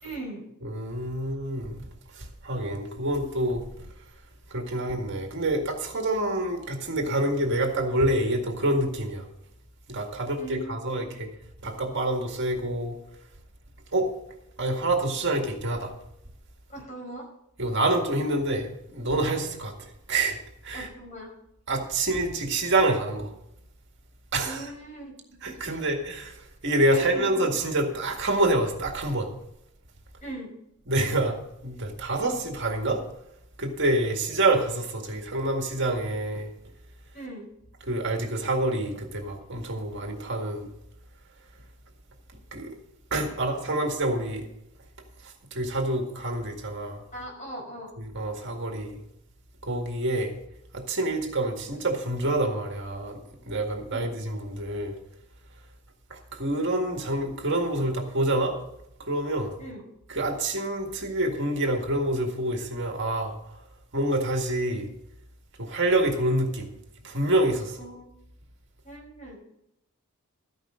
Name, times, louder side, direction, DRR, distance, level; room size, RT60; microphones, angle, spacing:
voice 1, 0.0-0.5 10.4-11.1 16.7-17.3 20.7-21.3 24.4-25.1 25.4-25.8 26.9-27.3 30.2-30.5 37.1-37.5 47.1-47.9 53.9-54.1 59.6-59.8 67.8-68.1 68.8-69.4, right 1 dB, 35° left, -1 dB, 5.1 m, -40 dB
voice 2, 0.6-1.8 2.2-3.6 4.5-9.2 9.9-11.3 11.6-13.0 13.9-14.1 14.6-15.9 17.6-19.7 20.1-20.4 20.6-20.9 21.7-23.3 24.3-24.7 25.4-26.3 26.6-29.3 30.9-31.4 31.6-33.0 33.6-36.5 37.9-40.7 42.5-42.7 43.1-44.4 45.5-47.0 48.0-49.0 49.6-50.3 50.7-53.2 53.5-54.9 56.1-58.6 59.0-59.5 60.1-63.3 63.9-64.9 65.6-66.7 67.0-67.8, right 1 dB, 55° right, 3 dB, 2.0 m, -27 dB
13.5 x 10.5 x 3.8 m, 0.80 s
head